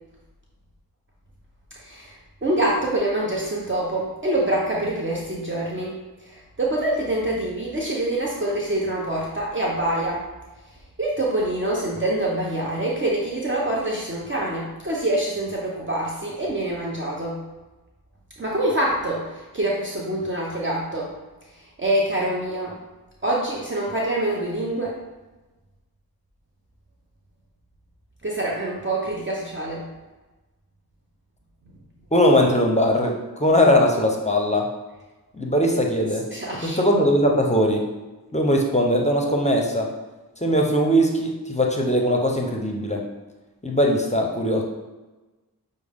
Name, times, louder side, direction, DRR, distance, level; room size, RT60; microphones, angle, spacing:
voice 1, 1.8-6.0 6.3-10.2 11.0-17.4 18.4-21.1 21.8-22.8 23.2-25.0 28.2-29.9 36.3-36.8, right 1 dB, 30° right, -4 dB, 0.8 m, -25 dB
voice 2, 32.1-33.1 33.4-34.7 35.3-36.2 36.6-37.8 38.3-39.9 40.4-43.0 43.6-44.6, equal, 20° left, 0 dB, 0.7 m, -20 dB
6.0 x 2.2 x 3.5 m, 1.2 s
cardioid pair, 45°, 37 cm